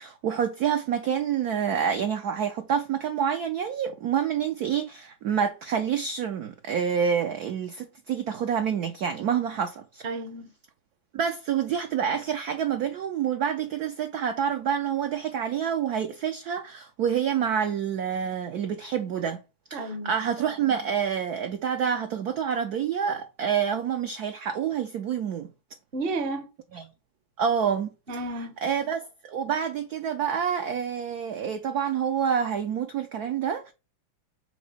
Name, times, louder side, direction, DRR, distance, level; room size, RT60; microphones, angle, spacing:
voice 1, 0.0-10.0 11.1-19.4 19.7-25.5 26.7-26.8 27.4-27.9 28.6-33.7, right 8 dB, 65° right, 0.9 m, -27 dB
voice 2, 10.0-10.5 19.7-20.1 25.9-26.5 28.1-28.6, right 2 dB, 40° right, 0.8 m, -32 dB
6.0 x 4.2 x 5.5 m
omnidirectional pair, 2.3 m